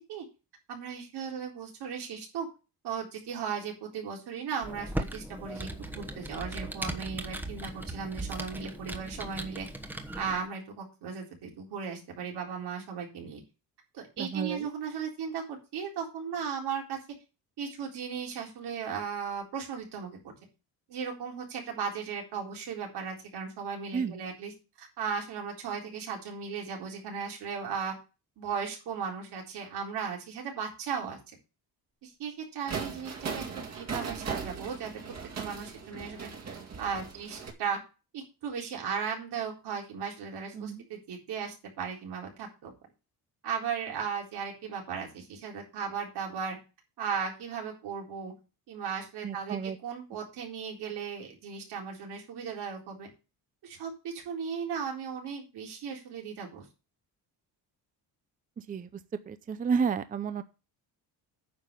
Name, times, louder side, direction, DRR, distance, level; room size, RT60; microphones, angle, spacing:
voice 1, 0.7-2.5 2.8-9.7 10.2-13.4 13.9-17.0 17.6-20.3 20.9-24.5 24.8-27.9 28.4-31.3 32.0-34.9 35.4-36.3 36.8-37.8 38.1-42.7 43.4-46.6 47.0-48.3 48.7-53.1 53.6-56.7, right 6 dB, 85° right, 1 dB, 4.1 m, -36 dB
Computer keyboard, 4.6-10.4, right 1 dB, 5° right, 1.0 m, -38 dB
voice 2, 14.2-14.7 23.9-24.2 40.5-40.8 49.2-49.8 58.7-58.9 59.3-60.4, right 6 dB, 20° right, 12 dB, 0.5 m, -31 dB
sound 1, 32.7-37.5, right 5 dB, 40° right, 2.1 m, -38 dB
9.5 x 5.7 x 6.7 m, 0.31 s
cardioid pair, 165°, 39 cm